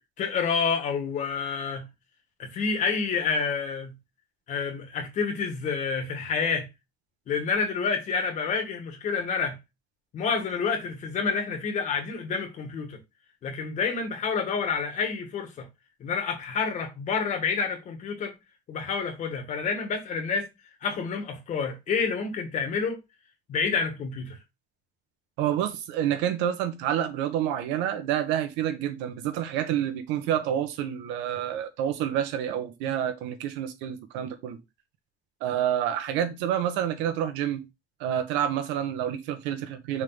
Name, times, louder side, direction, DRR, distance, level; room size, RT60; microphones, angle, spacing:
voice 1, 0.2-1.9 2.4-3.9 4.5-6.7 7.3-9.6 10.1-13.0 13.4-15.7 16.0-18.3 18.7-20.5 20.8-23.0 23.5-24.4, left 5 dB, 40° left, 1.9 m, -28 dB
voice 2, 25.4-34.6 35.4-37.7 38.0-40.0, right 10 dB, 90° right, 1.4 m, -28 dB
6.3 x 3.7 x 4.1 m
cardioid pair, 150°, 18 cm